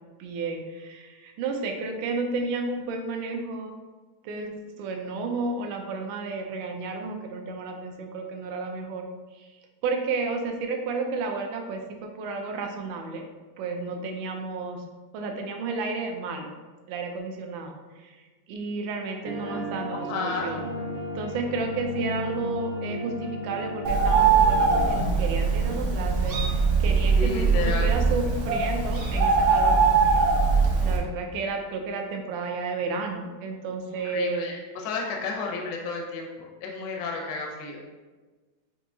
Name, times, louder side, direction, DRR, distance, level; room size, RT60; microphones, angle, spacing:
voice 1, 0.2-3.7 4.2-9.0 9.8-13.2 13.6-14.8 15.1-16.5 16.9-17.8 18.0-18.1 18.5-20.6 21.1-30.2 30.8-34.5, right 3 dB, 80° right, 3 dB, 1.3 m, -32 dB
sound 1, 19.2-25.0, equal, 50° left, 0.6 m, -34 dB
voice 2, 19.9-20.5 27.2-27.9 34.0-37.8, left 4 dB, 75° left, 1 dB, 1.2 m, -32 dB
Bird, 23.8-31.0, right 4 dB, 60° right, 0.8 m, -21 dB
5.7 x 2.7 x 2.6 m, 1.3 s
omnidirectional pair, 2.1 m